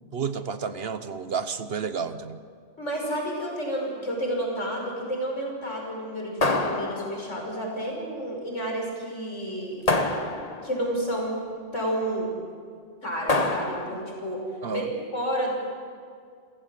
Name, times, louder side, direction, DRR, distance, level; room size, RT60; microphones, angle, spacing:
voice 1, 0.1-2.4 14.6-14.9, right 6 dB, 55° right, 11 dB, 1.1 m, -31 dB
voice 2, 2.8-9.8 10.6-11.4 11.7-12.3 13.0-14.4 14.7-14.8 15.1-15.5, right 1 dB, 90° left, 0 dB, 6.0 m, -30 dB
sound 1, 6.4-7.5 9.9-10.8 13.3-14.2, left 2 dB, 35° left, 1.4 m, -26 dB
29.0 x 15.5 x 7.5 m, 2.2 s
omnidirectional pair, 1.2 m